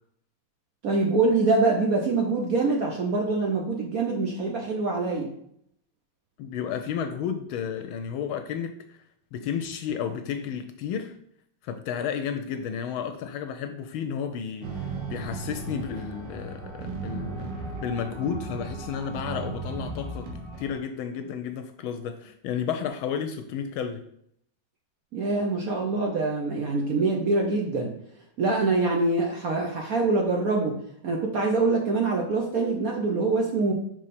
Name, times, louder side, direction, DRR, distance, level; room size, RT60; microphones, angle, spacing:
voice 1, 0.8-5.3 25.1-27.9 28.4-33.7, right 3 dB, 60° right, 0 dB, 0.9 m, -25 dB
voice 2, 6.4-9.0 9.3-11.2 11.6-17.5 17.8-20.3 20.6-24.0, left 7 dB, 75° left, 7 dB, 1.3 m, -32 dB
sound 1, 14.6-20.8, right 3 dB, 80° right, 2.0 m, -36 dB
6.2 x 4.3 x 4.1 m, 0.70 s
omnidirectional pair, 2.4 m